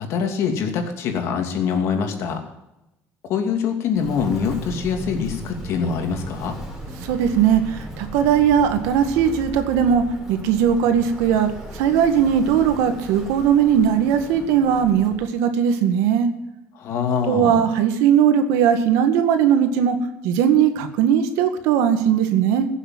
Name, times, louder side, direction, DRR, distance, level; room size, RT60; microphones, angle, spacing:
voice 1, 0.0-2.4 3.3-6.6 16.7-17.7, left 6 dB, 65° left, 4 dB, 2.7 m, -24 dB
Walk footsteps, 3.9-15.2, right 1 dB, 5° right, 4.8 m, -36 dB
voice 2, 7.0-10.0 10.3-16.3 17.3-20.0 20.2-22.7, right 8 dB, 90° right, 8 dB, 1.8 m, -19 dB
16.0 x 7.2 x 7.4 m, 0.92 s
cardioid pair, 115°, 5 cm